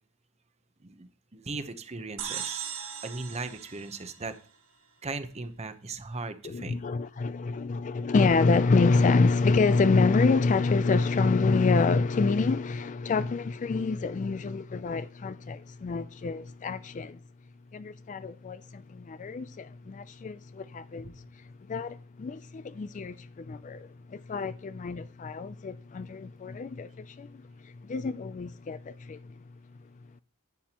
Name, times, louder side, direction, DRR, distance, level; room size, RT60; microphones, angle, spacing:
voice 1, 0.8-2.7 3.0-4.3 5.0-6.8, right 3 dB, 30° right, 0.8 m, -38 dB
sound 1, 2.2-4.8, right 8 dB, 65° right, 1.6 m, -38 dB
voice 2, 6.4-17.2 17.7-21.1 21.7-27.4 27.8-29.3, left 4 dB, 35° left, 0.3 m, -27 dB
11.0 x 9.3 x 2.9 m
head